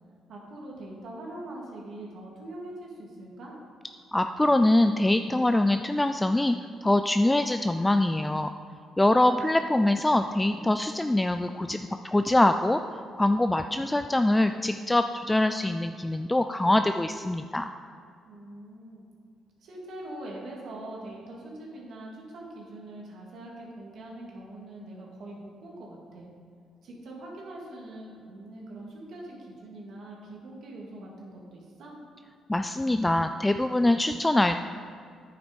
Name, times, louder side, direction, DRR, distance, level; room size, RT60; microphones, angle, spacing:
voice 1, 0.3-3.5 18.2-19.1 19.6-26.3 26.8-32.0, right 1 dB, 70° right, -3 dB, 2.6 m, -43 dB
voice 2, 4.1-8.5 9.0-11.8 12.0-12.8 13.1-17.7 32.5-34.6, left 1 dB, 10° left, 8 dB, 0.3 m, -24 dB
9.4 x 7.7 x 5.3 m, 2.3 s
cardioid pair, 90°, 0 cm